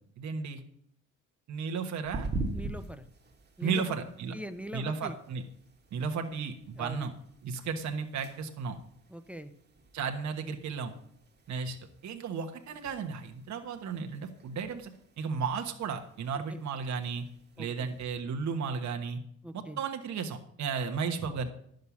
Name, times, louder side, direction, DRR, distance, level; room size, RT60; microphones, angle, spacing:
voice 1, 0.2-0.6 1.5-2.3 3.6-4.3 4.7-5.4 5.9-7.1 7.4-8.8 9.9-10.9 11.5-11.8 12.0-14.9 15.2-17.2 17.6-19.2 19.5-21.5, right 5 dB, 65° right, 4 dB, 1.3 m, -34 dB
sound 1, 2.0-18.1, right 2 dB, 35° right, 1.6 m, -45 dB
voice 2, 2.5-3.1 3.6-4.0 4.3-5.2 6.8-7.1 9.1-9.5 16.5-16.6 17.6-17.9 19.4-19.8, equal, 5° right, 9 dB, 0.8 m, -42 dB
11.0 x 6.6 x 7.2 m, 0.69 s
cardioid pair, 90°, 30 cm